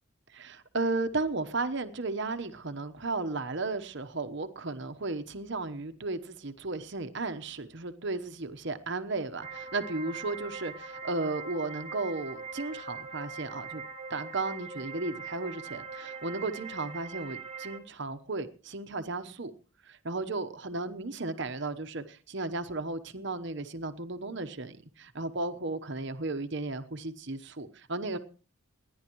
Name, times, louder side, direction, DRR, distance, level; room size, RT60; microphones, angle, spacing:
voice 1, 0.3-13.8 14.1-19.5 19.8-28.2, right 3 dB, 55° right, 10 dB, 1.0 m, -34 dB
sound 1, 9.4-17.8, right 4 dB, 25° right, 1.8 m, -42 dB
28.5 x 10.5 x 3.1 m, 0.37 s
head